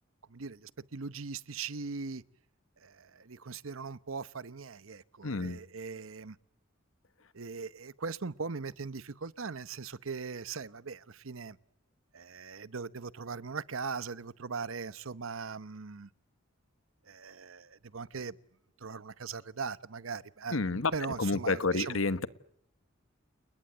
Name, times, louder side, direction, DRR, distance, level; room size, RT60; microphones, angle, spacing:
voice 1, 0.3-2.2 2.8-6.4 7.3-11.6 12.1-16.1 17.0-18.4 18.8-22.0, right 5 dB, 85° right, 0.9 m, -40 dB
voice 2, 5.2-5.6 20.5-20.9 21.2-22.3, left 3 dB, 85° left, 1.3 m, -29 dB
30.0 x 20.5 x 8.0 m
head